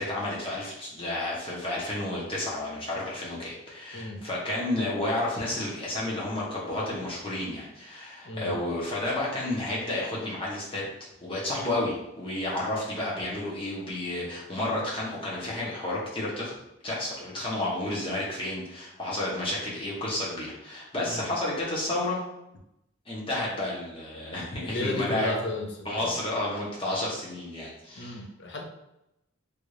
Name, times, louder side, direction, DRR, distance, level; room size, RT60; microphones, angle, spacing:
voice 1, 0.0-10.9 11.2-16.6 16.8-22.2 23.1-25.4 25.8-28.2, left 1 dB, 25° left, -5 dB, 1.0 m, -31 dB
voice 2, 24.6-26.2 28.0-28.6, left 2 dB, 55° left, 1 dB, 0.6 m, -33 dB
3.4 x 2.5 x 3.2 m, 0.86 s
head